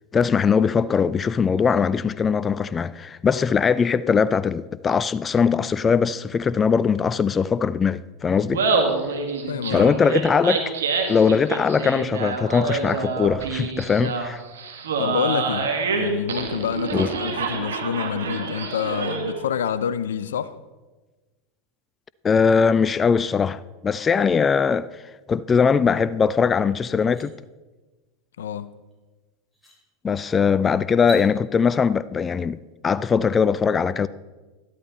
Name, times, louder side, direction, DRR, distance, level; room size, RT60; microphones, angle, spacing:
voice 1, 0.1-8.6 9.7-10.6 11.1-14.4 16.9-17.1 22.2-25.0 25.3-27.4 30.0-32.6 32.8-34.1, left 6 dB, 25° left, 0.4 m, -21 dB
Laughter, 8.4-19.4, right 4 dB, 80° right, 1.8 m, -27 dB
voice 2, 9.5-9.9 15.0-20.5 28.4-28.7, left 8 dB, 80° left, 0.5 m, -27 dB
sound 1, 26.3-26.4 26.8-27.3 28.9-29.0 29.5-29.8 30.9-31.3, left 1 dB, 5° left, 4.1 m, -39 dB
13.0 x 11.5 x 4.1 m
hypercardioid pair, 90°, 0 cm